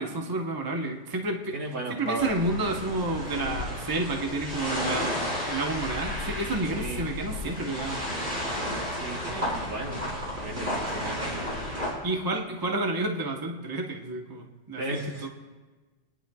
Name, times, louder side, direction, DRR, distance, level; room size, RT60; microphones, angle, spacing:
voice 1, 0.0-1.5 1.9-5.2 5.5-8.0 12.0-15.3, right 2 dB, 20° right, 2 dB, 0.8 m, -30 dB
voice 2, 1.5-2.9 6.8-7.1 8.9-11.5 14.8-15.3, right 2 dB, 65° right, 1 dB, 1.6 m, -36 dB
sound 1, 2.2-11.9, left 1 dB, 40° right, 4.9 m, -32 dB
28.5 x 10.0 x 2.3 m, 1.3 s
omnidirectional pair, 1.3 m